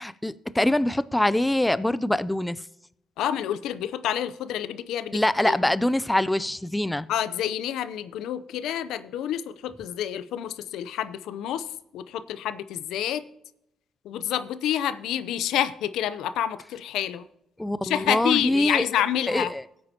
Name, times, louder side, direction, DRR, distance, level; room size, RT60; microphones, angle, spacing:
voice 1, 0.0-2.6 5.1-7.1 17.6-18.9 19.3-19.6, left 1 dB, 10° left, 0.4 m, -24 dB
voice 2, 3.2-5.6 7.1-11.6 11.9-13.2 14.1-17.2 17.8-19.5, left 10 dB, 85° left, 0.6 m, -28 dB
16.5 x 8.7 x 2.8 m
cardioid pair, 90°, 0 cm